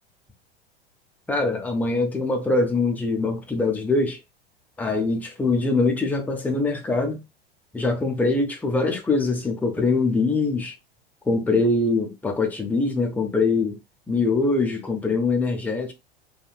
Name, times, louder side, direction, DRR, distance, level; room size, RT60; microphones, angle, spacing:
voice 1, 1.3-4.2 4.8-7.2 7.7-10.7 11.3-13.8 14.1-15.9, left 3 dB, 5° left, 0.6 m, -23 dB
3.1 x 2.4 x 2.3 m
figure-of-eight pair, 85°, 30 cm